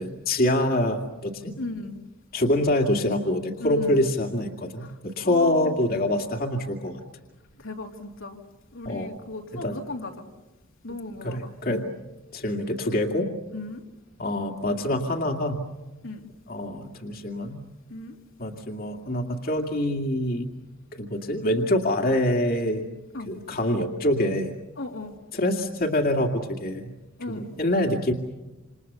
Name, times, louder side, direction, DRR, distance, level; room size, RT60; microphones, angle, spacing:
voice 1, 0.0-1.5 2.3-7.0 8.9-9.1 9.5-9.7 11.2-11.8 12.3-13.3 14.2-15.6 16.5-17.6 18.4-20.5 21.0-22.8 23.3-24.5 25.3-26.9 27.3-28.1, left 1 dB, 50° left, 3 dB, 2.3 m, -25 dB
voice 2, 1.6-2.0 3.6-4.1 4.8-5.0 5.2-5.8 7.6-8.4 8.7-10.3 10.8-11.8 13.5-13.8 16.0-16.3 17.9-18.2 23.1-23.3 24.8-25.2 27.2-27.5, left 2 dB, 75° left, 1 dB, 3.0 m, -36 dB
28.0 x 28.0 x 6.9 m, 1.1 s
head